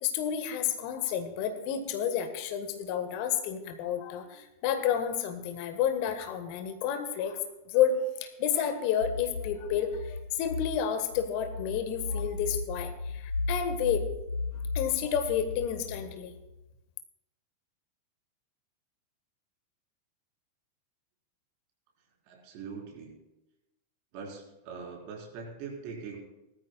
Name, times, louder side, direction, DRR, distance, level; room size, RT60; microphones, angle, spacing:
voice 1, 0.0-7.4 7.7-14.0 14.7-16.3, left 8 dB, 45° left, 8 dB, 1.4 m, -30 dB
sound 1, 9.0-16.5, left 3 dB, 85° left, 0.5 m, -36 dB
voice 2, 22.3-23.1 24.1-26.2, right 5 dB, 45° right, -1 dB, 4.1 m, -42 dB
20.0 x 13.0 x 2.3 m, 0.97 s
figure-of-eight pair, 90°, 0 cm